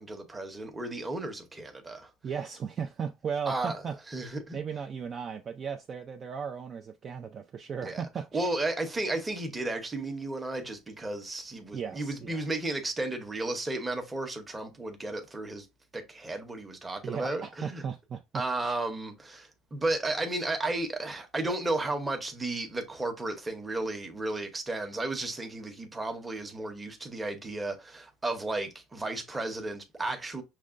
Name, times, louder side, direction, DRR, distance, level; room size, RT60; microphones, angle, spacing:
voice 1, 0.0-2.1 3.5-3.8 4.1-4.6 7.8-8.0 8.3-15.7 15.9-17.8 18.3-30.4, right 2 dB, 10° right, 0.8 m, -33 dB
voice 2, 2.2-4.0 4.5-8.5 11.7-12.5 17.0-18.8, right 6 dB, 30° right, 0.3 m, -36 dB
6.3 x 2.1 x 2.4 m
cardioid pair, 150°, 0 cm